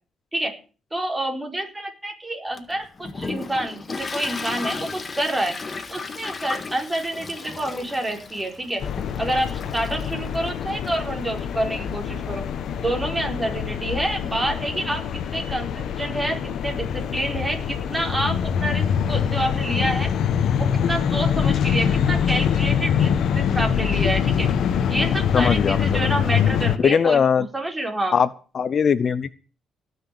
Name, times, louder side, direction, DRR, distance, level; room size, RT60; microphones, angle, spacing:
voice 1, 0.9-5.6 5.9-8.8 9.2-12.4 12.8-20.1 20.6-24.5 24.9-28.1, right 1 dB, 15° right, 2 dB, 4.8 m, -28 dB
Toilet flush, 2.6-12.8, left 4 dB, 30° left, 1.7 m, -36 dB
sound 1, 8.8-26.8, left 8 dB, 70° left, 1.5 m, -24 dB
voice 2, 25.3-26.1 26.8-27.5 28.1-28.3 28.5-29.3, left 7 dB, 50° left, 16 dB, 0.6 m, -20 dB
18.0 x 6.6 x 8.5 m, 0.37 s
cardioid pair, 90°, 0 cm